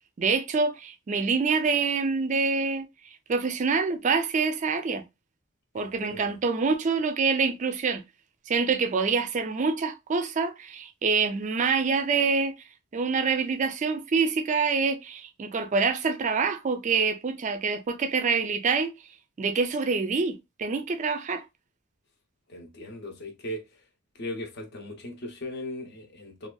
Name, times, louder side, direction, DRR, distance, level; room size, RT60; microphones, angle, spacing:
voice 1, 0.2-2.9 3.3-5.0 5.7-8.0 8.5-12.5 12.9-18.9 19.4-21.4, right 4 dB, 35° right, 0.3 m, -26 dB
voice 2, 5.8-6.3 22.5-23.8 24.1-26.5, left 1 dB, 50° left, 0.7 m, -38 dB
2.6 x 2.3 x 2.2 m
head